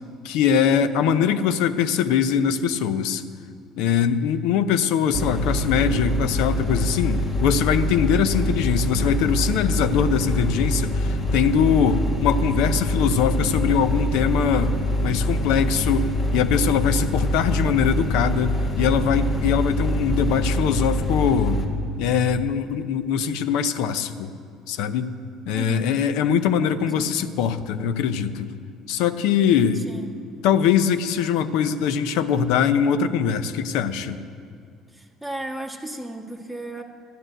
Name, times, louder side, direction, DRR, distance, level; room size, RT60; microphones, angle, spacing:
voice 1, 0.2-3.2 3.8-14.7 15.0-21.6 22.0-24.3 24.7-25.1 25.5-28.5 28.9-29.8 30.4-34.2, left 7 dB, 80° left, 12 dB, 0.7 m, -22 dB
sound 1, 5.1-21.7, left 1 dB, 40° left, 1.8 m, -24 dB
voice 2, 25.5-25.9 26.9-27.1 29.7-30.1 34.9-36.8, right 1 dB, 5° left, 2 dB, 1.5 m, -34 dB
12.0 x 8.9 x 7.7 m, 2.4 s
supercardioid pair, 85°, 0 cm